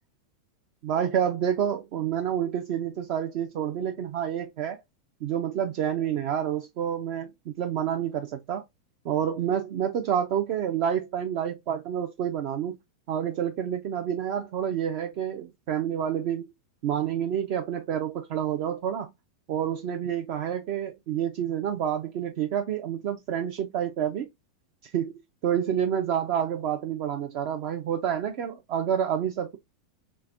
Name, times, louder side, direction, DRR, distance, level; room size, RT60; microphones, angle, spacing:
voice 1, 0.8-4.8 5.2-8.6 9.0-12.8 13.1-16.4 16.8-19.1 19.5-24.3 24.9-25.1 25.4-29.6, right 9 dB, 55° right, 0.6 m, -28 dB
3.4 x 3.2 x 2.5 m
hypercardioid pair, 105°, 2 cm